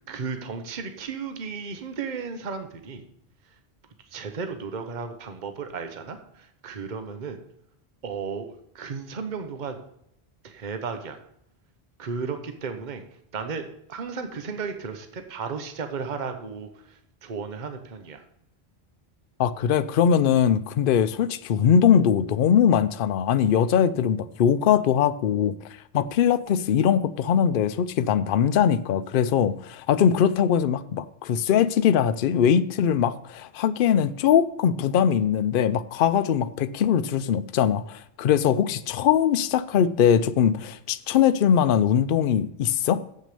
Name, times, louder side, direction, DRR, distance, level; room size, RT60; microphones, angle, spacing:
voice 1, 0.1-3.0 4.1-7.4 8.0-9.8 10.4-11.2 12.0-13.0 13.3-18.2, right 5 dB, 45° right, 7 dB, 1.0 m, -34 dB
voice 2, 19.4-25.5 25.9-43.0, left 8 dB, 60° left, 13 dB, 0.7 m, -21 dB
7.8 x 6.2 x 6.7 m, 0.75 s
omnidirectional pair, 1.1 m